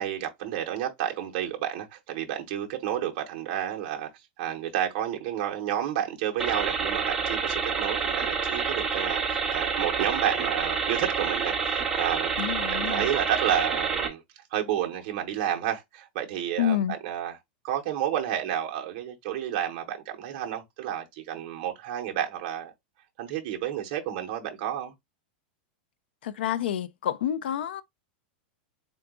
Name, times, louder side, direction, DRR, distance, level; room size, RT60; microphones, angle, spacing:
voice 1, 0.0-4.1 4.4-14.2 14.5-17.4 17.6-22.7 23.2-24.9, right 10 dB, 35° right, 0.8 m, -30 dB
sound 1, 6.4-14.1, right 5 dB, 5° right, 0.6 m, -28 dB
voice 2, 12.4-13.1 16.6-17.0 26.2-27.8, left 10 dB, 80° left, 0.4 m, -28 dB
3.8 x 2.3 x 3.5 m
supercardioid pair, 180°, 5 cm